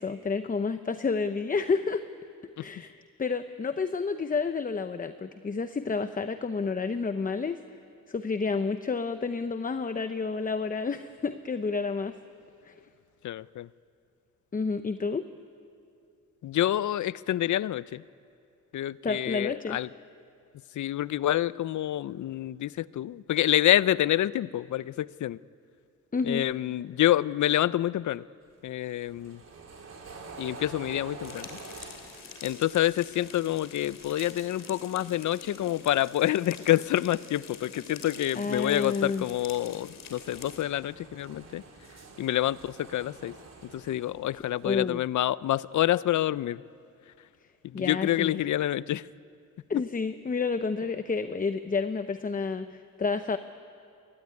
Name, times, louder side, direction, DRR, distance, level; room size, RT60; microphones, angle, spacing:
voice 1, 0.0-2.0 2.6-7.6 8.1-12.1 12.6-12.8 14.5-15.3 19.0-19.8 26.1-26.5 38.3-39.3 44.6-45.0 47.7-48.3 49.7-53.4, left 4 dB, 25° left, 10 dB, 0.8 m, -30 dB
voice 2, 13.2-13.7 16.4-18.0 18.7-19.9 20.7-25.4 26.2-28.2 28.6-29.4 30.4-31.6 32.4-41.6 42.2-43.3 43.7-46.6 47.6-49.1, left 13 dB, 65° left, 19 dB, 0.6 m, -27 dB
sound 1, 28.4-35.5 35.8-37.4 37.7-44.8, right 3 dB, 55° right, 4.5 m, -49 dB
sound 2, 31.2-40.6, left 6 dB, 85° left, 3.3 m, -46 dB
26.0 x 22.0 x 9.7 m, 2.5 s
cardioid pair, 110°, 32 cm